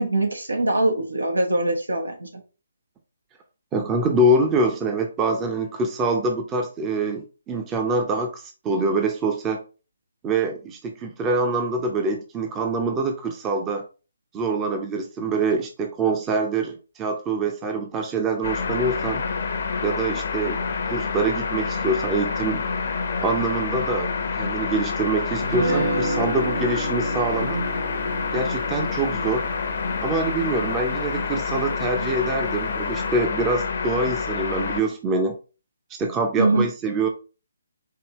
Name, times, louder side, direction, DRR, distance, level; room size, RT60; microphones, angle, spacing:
voice 1, 0.0-2.3 36.4-36.7, right 2 dB, 85° right, 3 dB, 1.2 m, -22 dB
voice 2, 3.7-9.6 10.2-13.8 14.3-19.2 19.8-22.6 23.2-24.1 24.4-27.7 28.3-29.4 30.0-35.3 36.0-37.1, right 2 dB, 15° right, 4 dB, 0.7 m, -25 dB
sound 1, 18.4-34.8, left 5 dB, 55° left, 0.8 m, -27 dB
Guitar, 25.4-31.5, right 1 dB, 55° right, 1.1 m, -30 dB
4.9 x 2.7 x 3.0 m, 0.33 s
figure-of-eight pair, 145°, 0 cm